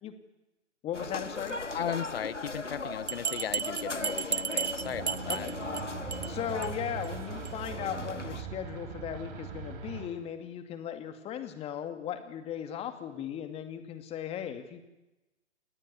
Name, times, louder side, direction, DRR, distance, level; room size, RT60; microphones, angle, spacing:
voice 1, 0.8-1.6 5.3-5.5 6.3-14.8, left 9 dB, 15° left, 8 dB, 2.5 m, -37 dB
sound 1, 0.9-8.4, left 3 dB, 85° left, 2.0 m, -38 dB
voice 2, 1.7-5.5, left 9 dB, 55° left, 22 dB, 0.9 m, -36 dB
Bell, 3.1-5.8 6.1-6.3 6.6-6.7 7.0-7.1 7.4-7.5, right 7 dB, 65° right, 1.0 m, -33 dB
sound 2, 4.8-10.1, right 7 dB, 35° right, 5.0 m, -41 dB
29.0 x 19.5 x 9.7 m, 0.98 s
figure-of-eight pair, 125°, 35 cm